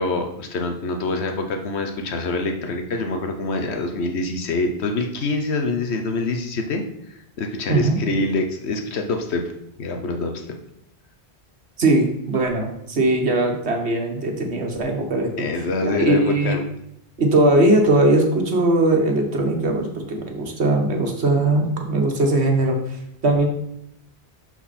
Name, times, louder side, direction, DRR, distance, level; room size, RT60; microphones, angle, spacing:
voice 1, 0.0-6.8 7.1-9.4 9.8-10.6 15.4-16.6, left 2 dB, 90° left, 5 dB, 1.2 m, -25 dB
voice 2, 11.8-16.6 17.2-23.5, right 2 dB, 85° right, 3 dB, 1.7 m, -20 dB
11.5 x 4.5 x 4.2 m, 0.79 s
omnidirectional pair, 1.1 m